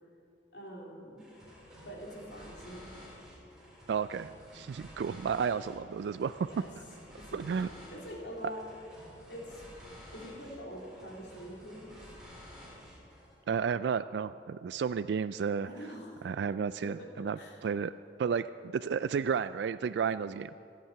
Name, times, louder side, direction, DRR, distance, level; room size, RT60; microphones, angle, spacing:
voice 1, 0.5-1.2 1.8-2.9 6.4-6.7 7.1-8.7 9.3-9.6 10.1-12.1 15.6-16.3 16.8-17.6, equal, 90° left, -2 dB, 3.7 m, -45 dB
sound 1, 1.2-13.4, equal, 5° right, 4.1 m, -52 dB
voice 2, 3.9-6.5 7.3-7.7 13.5-15.7 16.2-17.9 18.2-18.5 18.7-20.5, right 6 dB, 75° right, 14 dB, 0.3 m, -32 dB
26.0 x 9.3 x 5.8 m, 2.6 s
head